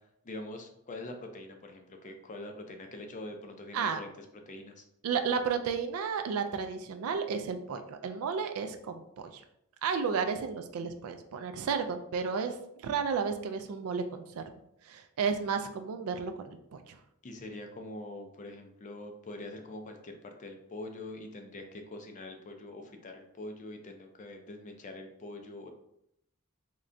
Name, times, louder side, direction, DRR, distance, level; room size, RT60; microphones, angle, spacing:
voice 1, 0.2-4.8 17.2-25.7, left 2 dB, 35° left, 5 dB, 0.4 m, -44 dB
voice 2, 5.0-9.0 9.3-9.4 9.8-14.4 14.9-16.6 16.9-17.0, right 6 dB, 70° right, 7 dB, 0.3 m, -32 dB
3.7 x 3.2 x 2.5 m, 0.76 s
head